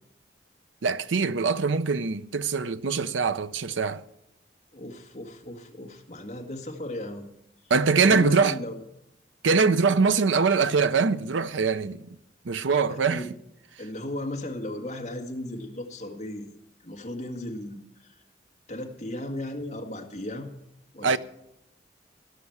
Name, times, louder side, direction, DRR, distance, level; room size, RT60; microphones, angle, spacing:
voice 1, 0.8-4.0 7.7-8.5 9.4-12.0 12.4-13.2 21.0-21.2, right 5 dB, 90° right, 0.6 m, -23 dB
voice 2, 4.7-7.3 7.9-8.8 12.9-13.3 13.8-16.5 16.8-18.2 18.7-20.5 20.9-21.2, left 1 dB, 35° left, 1.7 m, -36 dB
17.5 x 6.0 x 7.9 m
head